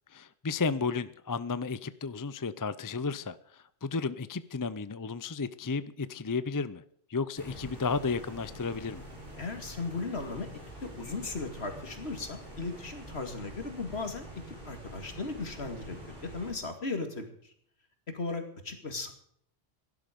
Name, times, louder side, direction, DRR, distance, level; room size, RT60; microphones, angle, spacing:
voice 1, 0.1-6.8 7.1-9.0, left 4 dB, 25° left, 15 dB, 0.4 m, -33 dB
sound 1, 7.4-16.5, equal, 40° right, 5.9 m, -46 dB
voice 2, 9.4-10.5 10.8-14.3 14.7-17.5 18.1-19.1, left 3 dB, 60° left, 6 dB, 2.6 m, -37 dB
17.0 x 12.0 x 5.2 m, 0.65 s
omnidirectional pair, 1.2 m